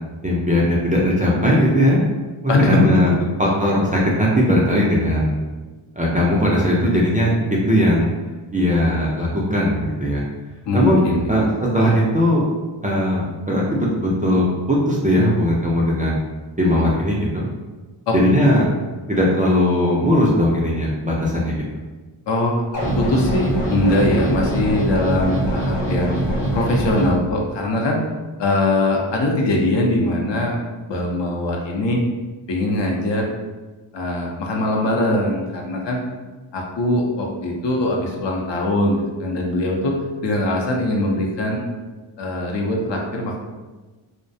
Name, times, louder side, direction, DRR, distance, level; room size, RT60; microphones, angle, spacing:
voice 1, 0.2-2.0 2.4-3.1 3.4-5.4 6.0-7.3 7.7-8.1 8.5-10.2 10.7-11.0 11.3-11.5 11.7-12.4 12.8-16.2 16.6-17.5 18.1-18.7 19.1-21.6, equal, 20° right, -5 dB, 0.3 m, -18 dB
voice 2, 2.5-3.1 10.7-11.4 16.7-16.8 18.1-18.2 22.3-22.6 23.0-26.2 26.5-28.0 28.4-30.6 30.9-32.0 32.5-33.2 33.9-36.0 36.5-39.9 40.2-41.6 42.2-43.4, left 1 dB, 60° left, 0 dB, 0.6 m, -21 dB
sound 1, 22.7-27.1, right 1 dB, 35° left, 0.9 m, -22 dB
2.4 x 2.1 x 2.6 m, 1.2 s
cardioid pair, 70°, 49 cm